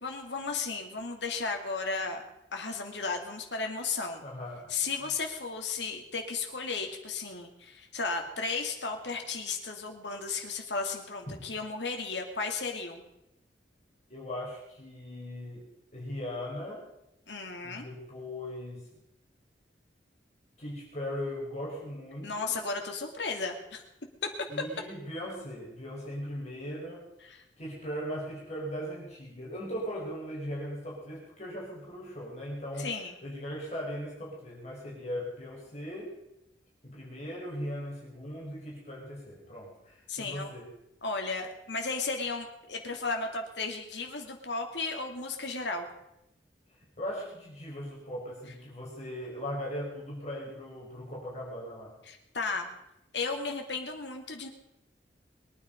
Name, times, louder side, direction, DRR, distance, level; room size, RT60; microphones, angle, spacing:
voice 1, 0.0-2.2 2.5-4.2 4.7-13.0 17.3-17.9 22.2-23.8 27.2-27.4 32.8-33.1 40.1-40.5 41.0-45.9 52.0-52.7 53.1-54.5, left 4 dB, 75° left, 3 dB, 2.5 m, -34 dB
voice 2, 4.2-4.9 11.3-11.4 14.1-16.9 17.6-18.9 20.6-22.5 24.5-27.1 27.6-32.9 33.2-36.1 36.8-40.7 47.0-51.9, equal, 40° left, -4 dB, 4.7 m, -39 dB
22.5 x 9.6 x 5.3 m, 0.86 s
head